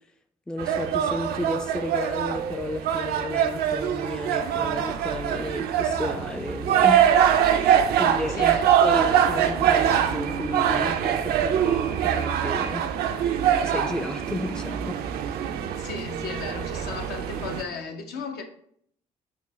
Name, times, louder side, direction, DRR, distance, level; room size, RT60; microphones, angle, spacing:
voice 1, 0.5-7.1 7.3-12.9 13.6-15.0 15.4-15.6, left 1 dB, 5° left, 0.4 m, -33 dB
sound 1, 0.6-17.6, right 9 dB, 60° right, 0.4 m, -23 dB
voice 2, 8.3-8.7 15.8-18.4, left 5 dB, 65° left, 0.6 m, -35 dB
6.2 x 2.1 x 3.0 m
hypercardioid pair, 50°, 18 cm